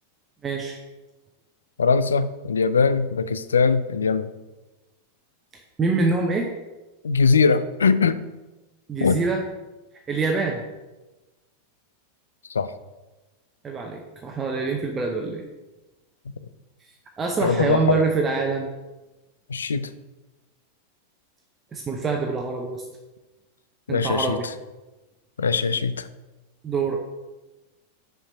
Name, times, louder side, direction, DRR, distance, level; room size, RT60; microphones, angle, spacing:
voice 1, 0.4-0.8 5.8-6.5 8.9-9.4 10.1-10.6 13.6-15.4 17.2-18.7 21.7-22.8 23.9-24.5 26.6-27.0, right 4 dB, 20° right, 1 dB, 0.8 m, -25 dB
voice 2, 1.8-4.3 7.0-8.2 9.0-9.2 12.5-12.7 17.4-18.0 19.5-19.9 23.9-24.4 25.4-26.1, left 5 dB, 70° left, 13 dB, 0.4 m, -21 dB
5.9 x 4.6 x 5.5 m, 1.1 s
figure-of-eight pair, 90°, 0 cm